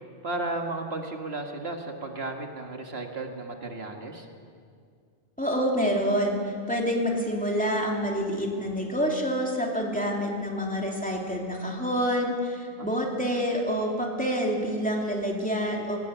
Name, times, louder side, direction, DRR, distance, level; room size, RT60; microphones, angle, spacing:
voice 1, 0.2-4.3 12.8-12.9, right 2 dB, 70° right, 3 dB, 2.0 m, -34 dB
voice 2, 5.4-6.4 6.7-16.0, equal, 5° left, -1 dB, 3.1 m, -27 dB
20.0 x 19.5 x 8.2 m, 2.2 s
omnidirectional pair, 1.1 m